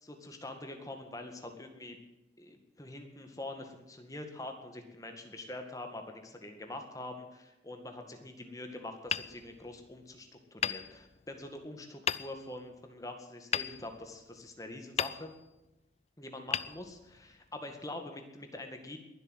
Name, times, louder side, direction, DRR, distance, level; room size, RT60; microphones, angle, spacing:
voice 1, 0.0-2.0 2.4-15.3 16.2-19.0, left 2 dB, 20° left, 5 dB, 2.0 m, -44 dB
Hammer, 9.1-10.1 10.6-11.5 12.1-12.7 13.5-14.5 15.0-15.7 16.5-17.5, left 8 dB, 35° left, 0.4 m, -37 dB
21.5 x 8.1 x 8.1 m, 0.99 s
head